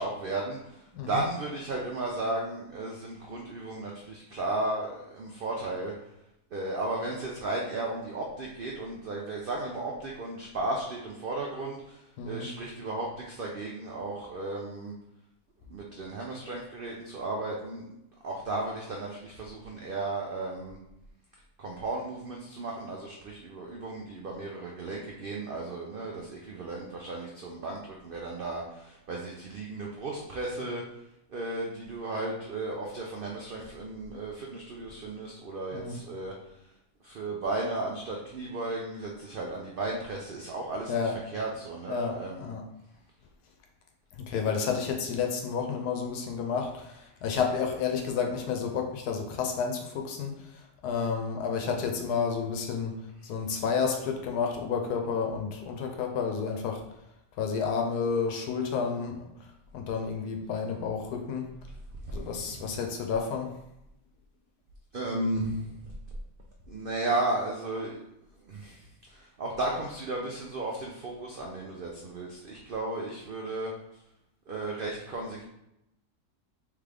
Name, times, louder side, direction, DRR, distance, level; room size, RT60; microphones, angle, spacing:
voice 1, 0.0-5.9 6.5-14.9 15.7-18.0 18.2-20.8 21.6-31.0 31.3-36.7 37.0-40.9 41.3-42.5 62.0-62.7 64.9-65.7 66.7-68.1 68.4-73.7 74.5-75.4, right 2 dB, 85° right, -1 dB, 0.4 m, -34 dB
voice 2, 0.9-1.3 12.2-12.5 35.7-36.0 40.9-41.1 41.9-42.6 44.1-53.0 53.2-56.8 57.4-59.2 59.7-61.5 62.1-63.5, left 6 dB, 85° left, 3 dB, 1.2 m, -31 dB
3.7 x 3.4 x 3.4 m, 0.84 s
omnidirectional pair, 1.7 m